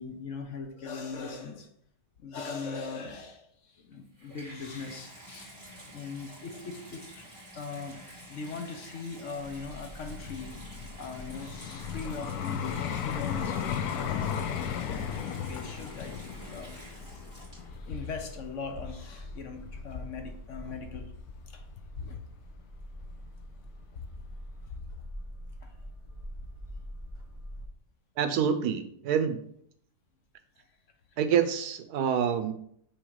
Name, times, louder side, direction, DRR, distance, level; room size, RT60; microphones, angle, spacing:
voice 1, 0.0-1.7 2.2-5.5 5.9-7.3 7.5-8.0 8.3-13.6 14.1-16.8 17.7-21.1 21.5-22.2 23.9-24.1 24.7-24.8 25.6-25.9 30.6-30.7, left 4 dB, 55° left, 5 dB, 1.1 m, -40 dB
Water tap faucet / Bathtub (filling or washing), 3.9-18.0 18.8-18.9, equal, 20° right, 2.6 m, -49 dB
sound 1, 9.3-27.7, equal, 30° left, 1.4 m, -46 dB
Vehicle, 10.0-19.1 19.7-19.9, left 8 dB, 75° left, 1.1 m, -35 dB
voice 2, 28.2-29.4 31.2-32.5, right 8 dB, 90° right, 10 dB, 1.3 m, -27 dB
6.3 x 3.9 x 4.8 m, 0.66 s
omnidirectional pair, 1.6 m